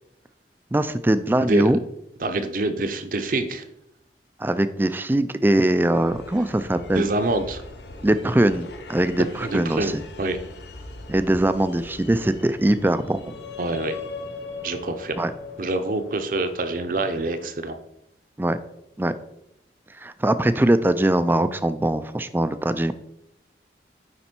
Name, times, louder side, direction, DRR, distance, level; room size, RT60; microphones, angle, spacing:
voice 1, 0.7-1.8 4.4-7.1 8.0-10.0 11.1-13.2 15.2-15.3 18.4-18.6 19.0-19.1 20.0-23.0, right 1 dB, 10° right, 12 dB, 0.3 m, -21 dB
voice 2, 2.2-3.6 6.9-7.6 9.4-9.9 10.2-10.4 13.6-14.0 14.6-15.1 15.6-17.8, right 2 dB, 50° right, 8 dB, 0.7 m, -25 dB
sound 1, 5.9-17.5, left 3 dB, 70° left, 0.8 m, -40 dB
9.6 x 4.1 x 4.5 m, 0.83 s
head